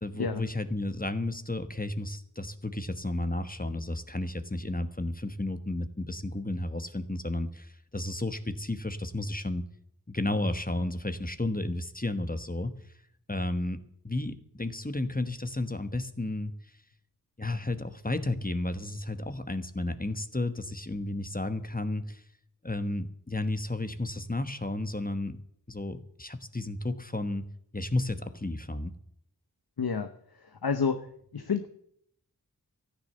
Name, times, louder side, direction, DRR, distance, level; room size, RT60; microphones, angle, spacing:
voice 1, 0.0-9.6 10.1-12.8 13.3-13.8 14.0-16.5 17.4-22.2 22.6-25.4 25.7-27.4 27.7-28.9, left 2 dB, 25° left, 9 dB, 1.2 m, -32 dB
voice 2, 29.8-30.1 30.6-31.0 31.3-31.7, left 5 dB, 80° left, 9 dB, 0.9 m, -28 dB
14.5 x 9.9 x 6.7 m, 0.68 s
wide cardioid pair, 45°, 37 cm